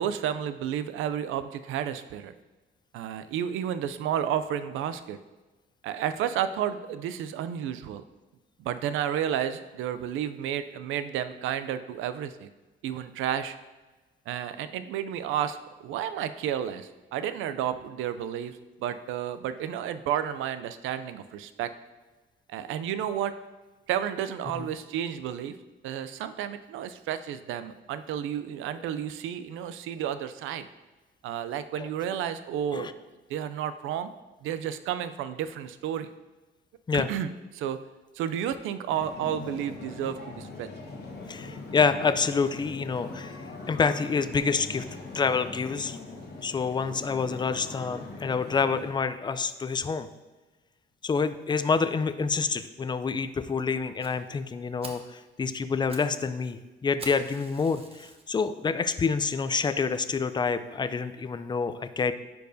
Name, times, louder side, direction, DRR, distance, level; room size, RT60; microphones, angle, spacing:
voice 1, 0.0-2.3 2.9-5.2 5.8-8.0 8.6-12.5 12.8-13.6 14.3-21.7 22.5-23.3 23.9-25.5 25.8-30.7 31.2-33.0 33.3-34.1 34.4-36.1 36.9-37.8 38.2-40.7, right 9 dB, 90° right, 12 dB, 0.4 m, -31 dB
sound 1, 38.9-48.9, left 3 dB, 55° left, 1.2 m, -41 dB
voice 2, 41.3-44.9 45.1-46.0 46.4-50.1 51.0-62.1, left 5 dB, 20° left, 12 dB, 0.4 m, -27 dB
Fire, 54.0-54.1 54.5-54.6 54.8-55.1 55.6-56.1 56.4-56.5 57.0-58.3 58.9-59.0 59.6-59.7 59.9-60.0 60.4-60.5, right 2 dB, 30° right, 1.0 m, -44 dB
9.8 x 4.6 x 2.7 m, 1.2 s
cardioid pair, 90°, 20 cm